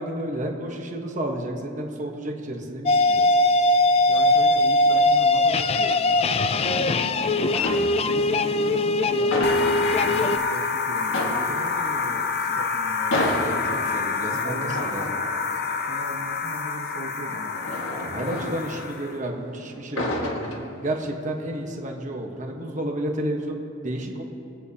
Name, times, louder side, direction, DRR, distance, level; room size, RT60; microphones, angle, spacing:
voice 1, 0.0-3.2 13.2-15.1 18.0-20.3 20.8-24.2, right 1 dB, 40° right, 1 dB, 1.2 m, -31 dB
sound 1, 2.9-10.4, left 2 dB, 30° left, 0.3 m, -20 dB
voice 2, 4.1-7.6 8.0-13.3 13.7-13.8 14.3-15.2 15.9-17.6 17.9-18.8 19.9-20.8, right 2 dB, 75° right, 1 dB, 0.9 m, -38 dB
sound 2, 7.5-8.3 8.6-10.4 10.7-10.8 11.1-19.4 19.7-21.2 21.6-21.9, left 1 dB, 85° left, 1.4 m, -32 dB
sound 3, 9.4-19.1, left 5 dB, 55° left, 0.8 m, -28 dB
23.5 x 8.4 x 2.8 m, 2.7 s
head